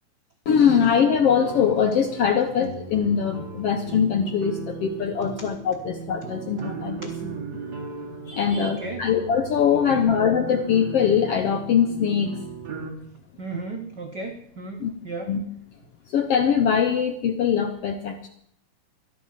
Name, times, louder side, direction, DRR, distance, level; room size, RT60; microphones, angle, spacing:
voice 1, 0.5-7.1 8.3-12.4 14.8-14.9 15.3-15.4 16.1-18.3, left 7 dB, 70° left, 6 dB, 1.5 m, -22 dB
sound 1, 1.4-12.9, right 5 dB, 35° right, 1.8 m, -37 dB
voice 2, 8.6-9.1 9.7-10.1 13.4-15.4, right 3 dB, 85° right, 3 dB, 0.9 m, -35 dB
13.5 x 11.5 x 7.4 m, 0.69 s
omnidirectional pair, 3.9 m